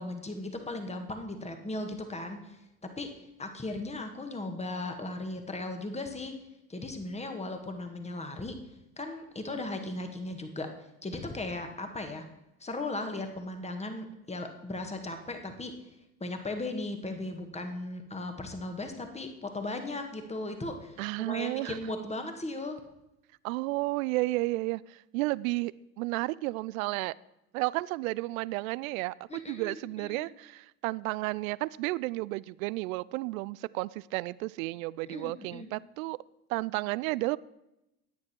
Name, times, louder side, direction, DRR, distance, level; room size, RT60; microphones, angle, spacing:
voice 1, 0.0-6.4 6.7-8.6 9.0-10.7 11.0-12.3 12.6-15.7 16.2-22.8 29.3-30.3 35.0-35.7, left 2 dB, 15° left, 6 dB, 1.8 m, -37 dB
voice 2, 21.0-21.8 23.4-27.1 27.5-36.2 36.5-37.4, right 21 dB, 65° right, 22 dB, 0.5 m, -32 dB
14.5 x 9.6 x 4.5 m, 0.91 s
hypercardioid pair, 65°, 44 cm